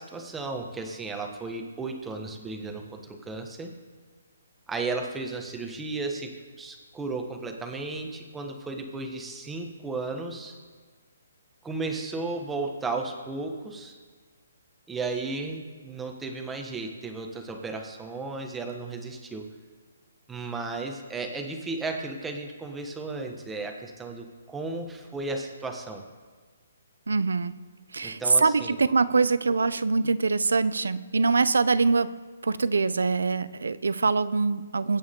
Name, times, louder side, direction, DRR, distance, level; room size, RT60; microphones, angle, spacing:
voice 1, 0.0-3.7 4.7-10.5 11.6-14.0 14.9-19.5 20.3-26.0 28.0-28.7, right 3 dB, 10° right, 3 dB, 1.4 m, -34 dB
voice 2, 27.1-27.6 27.9-32.1 32.4-35.0, right 4 dB, 85° right, 15 dB, 0.7 m, -24 dB
23.0 x 8.7 x 3.8 m, 1.5 s
hypercardioid pair, 155°, 0 cm